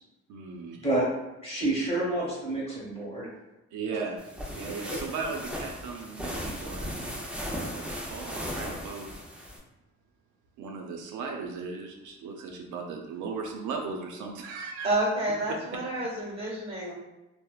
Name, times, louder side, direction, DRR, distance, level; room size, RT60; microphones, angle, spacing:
voice 1, 0.3-0.9 3.7-4.2 4.5-9.1 10.6-14.9, right 4 dB, 80° right, 2 dB, 0.5 m, -37 dB
voice 2, 1.4-3.3 4.9-5.0, right 1 dB, 20° left, -6 dB, 1.2 m, -28 dB
sound 1, 4.2-9.6, equal, 5° right, 0.5 m, -37 dB
voice 3, 14.8-16.9, right 1 dB, 20° right, -5 dB, 1.2 m, -29 dB
3.0 x 2.0 x 2.3 m, 1.0 s
cardioid pair, 90°, 30 cm